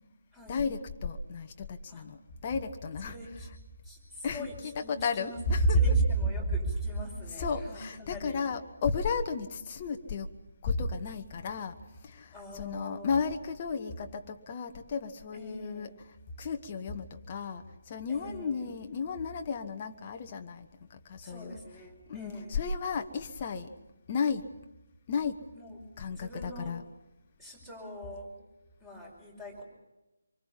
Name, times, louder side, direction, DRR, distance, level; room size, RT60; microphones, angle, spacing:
voice 1, 0.5-3.1 4.2-6.0 7.4-10.3 10.6-11.8 12.0-15.9 16.4-21.6 22.1-23.7 24.1-24.5 25.1-25.4 26.0-26.8, left 3 dB, 25° left, 5 dB, 1.2 m, -32 dB
voice 2, 3.0-3.5 3.8-5.4 5.7-8.5 12.3-13.2 15.3-15.9 18.1-18.8 21.2-22.5 25.5-25.8 26.1-26.8 27.4-28.4 28.8-29.6, left 1 dB, 5° right, -2 dB, 5.4 m, -45 dB
26.0 x 24.0 x 5.6 m, 1.0 s
figure-of-eight pair, 150°, 0 cm